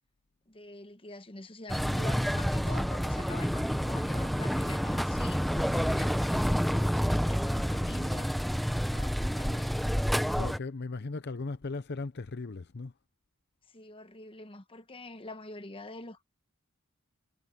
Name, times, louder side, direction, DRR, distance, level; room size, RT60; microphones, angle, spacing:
voice 1, 0.5-8.4 8.9-9.8 13.7-16.2, left 2 dB, 25° left, 1.1 m, -45 dB
sound 1, 1.7-10.6, equal, ahead, 0.7 m, -29 dB
voice 2, 10.3-12.9, left 3 dB, 50° left, 0.7 m, -37 dB
head